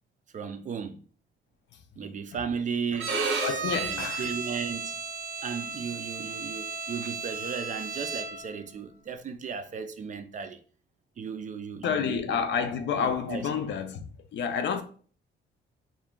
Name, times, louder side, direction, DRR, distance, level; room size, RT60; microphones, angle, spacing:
voice 1, 0.3-1.0 2.0-3.2 3.7-5.0 5.4-10.6 11.2-12.4 13.0-13.5, right 6 dB, 40° right, 0.4 m, -35 dB
Bowed string instrument, 3.0-8.5, right 4 dB, 80° right, 0.6 m, -33 dB
voice 2, 3.4-4.3 11.8-14.8, left 6 dB, 65° left, 0.5 m, -29 dB
2.4 x 2.2 x 3.6 m
cardioid pair, 90°, 20 cm